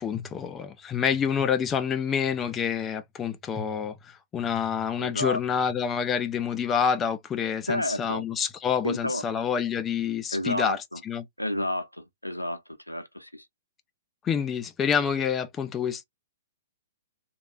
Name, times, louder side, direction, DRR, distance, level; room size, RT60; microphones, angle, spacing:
voice 1, 0.0-11.3 14.2-16.0, left 7 dB, 20° left, 0.4 m, -28 dB
voice 2, 5.0-5.4 7.7-8.2 8.8-9.2 10.3-11.0 11.4-12.6 12.9-13.4, left 1 dB, 90° left, 0.6 m, -30 dB
3.2 x 2.3 x 2.7 m
figure-of-eight pair, 115°, 0 cm